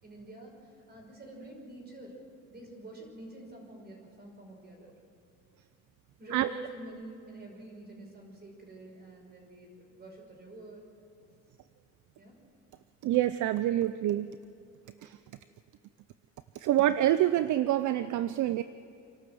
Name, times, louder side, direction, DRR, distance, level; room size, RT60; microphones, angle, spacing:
voice 1, 0.0-2.2 2.5-4.9 6.2-10.8 12.2-12.4, right 2 dB, 30° right, 1 dB, 5.7 m, -47 dB
voice 2, 13.0-14.3 15.0-15.2 16.5-18.6, right 13 dB, 60° right, 13 dB, 0.6 m, -26 dB
27.5 x 12.5 x 7.7 m, 2.6 s
cardioid pair, 130°, 33 cm